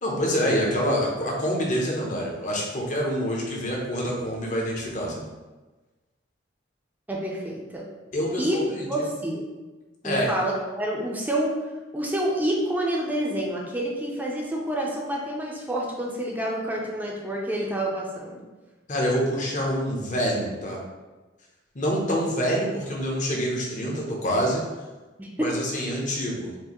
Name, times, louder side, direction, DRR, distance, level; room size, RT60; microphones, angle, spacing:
voice 1, 0.0-5.2 8.1-9.1 10.0-10.3 18.9-20.8 21.7-24.6 25.4-26.5, equal, 40° left, -2 dB, 0.8 m, -26 dB
voice 2, 7.1-7.9 8.4-9.5 10.0-11.5 11.9-18.4 25.2-25.5, right 1 dB, 10° right, -2 dB, 0.5 m, -28 dB
4.5 x 2.6 x 3.0 m, 1.2 s
head